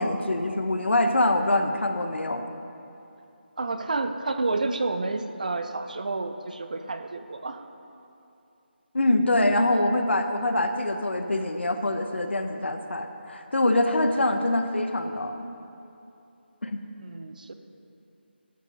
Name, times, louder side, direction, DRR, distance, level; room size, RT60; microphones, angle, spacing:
voice 1, 0.0-2.4 8.9-15.5 16.6-16.8, left 1 dB, 80° left, 6 dB, 1.1 m, -24 dB
voice 2, 3.6-7.6 17.0-17.5, right 3 dB, 45° right, 8 dB, 0.6 m, -30 dB
12.5 x 9.9 x 4.1 m, 2.7 s
figure-of-eight pair, 170°, 6 cm